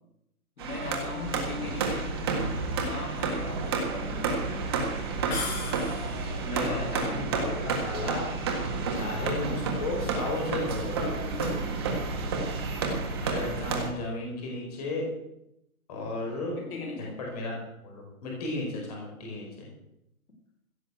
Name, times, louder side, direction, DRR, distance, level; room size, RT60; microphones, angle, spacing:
voice 1, 0.6-2.2 2.7-4.4 6.6-7.3 8.9-9.1 11.0-11.9 16.5-17.2, left 3 dB, 70° left, 4 dB, 3.9 m, -39 dB
sound 1, 0.6-13.9, right 4 dB, 15° right, 1.5 m, -30 dB
sound 2, 5.3-6.4, left 4 dB, 45° left, 3.9 m, -36 dB
voice 2, 6.2-8.5 9.0-11.0 13.2-15.1 15.9-16.6 17.3-17.6 17.8-19.7, left 2 dB, 25° left, -1 dB, 4.7 m, -34 dB
16.0 x 7.5 x 8.0 m, 0.82 s
hypercardioid pair, 175°, 44 cm